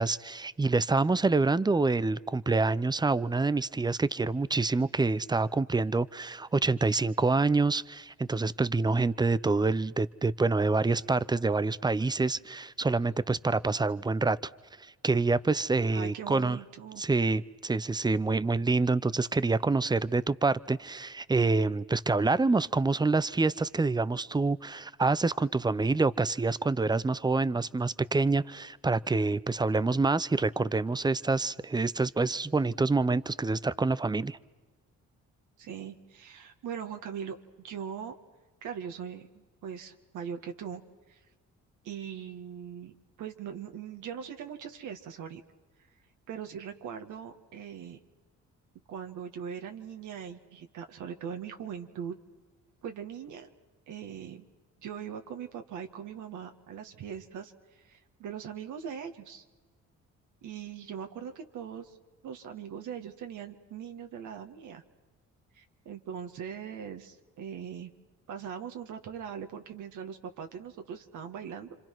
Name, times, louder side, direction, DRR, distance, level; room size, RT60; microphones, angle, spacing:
voice 1, 0.0-14.4 14.8-16.6 17.0-34.4, right 3 dB, 15° right, 0.7 m, -27 dB
voice 2, 15.9-17.0 35.6-38.1 38.6-40.8 41.1-41.2 41.8-42.9 43.2-45.4 46.3-48.0 48.9-52.1 52.8-53.5 53.9-54.5 54.8-59.4 60.4-62.0 62.2-64.8 65.5-67.9 68.3-71.8, right 8 dB, 80° right, 2.1 m, -40 dB
30.0 x 25.5 x 6.1 m
cardioid pair, 90°, 30 cm